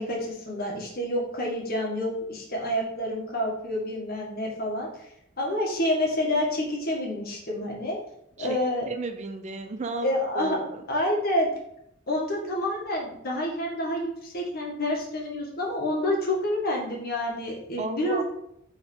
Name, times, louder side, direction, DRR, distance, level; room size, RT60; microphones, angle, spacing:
voice 1, 0.0-4.9 5.4-8.0 8.4-8.9 10.0-10.6 10.9-11.5 12.1-18.2, left 1 dB, 50° left, -2 dB, 1.7 m, -28 dB
voice 2, 8.9-10.1 10.4-10.8 17.8-18.2, right 3 dB, 35° right, 7 dB, 0.5 m, -33 dB
4.6 x 3.8 x 5.4 m, 0.76 s
head